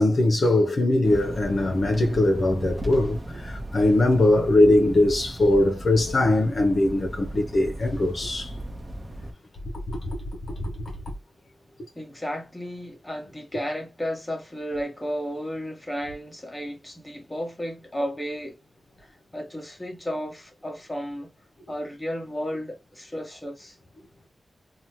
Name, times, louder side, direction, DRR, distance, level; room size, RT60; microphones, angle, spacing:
voice 1, 0.0-8.5 9.9-10.2 10.6-10.7, left 1 dB, 65° left, 0.7 m, -21 dB
sound 1, 1.0-9.3, right 1 dB, 40° right, 0.7 m, -36 dB
voice 2, 11.9-18.6 19.0-19.1 19.3-21.3 21.7-23.8, equal, 15° left, 1.1 m, -33 dB
2.8 x 2.1 x 2.9 m
cardioid pair, 65°, 0 cm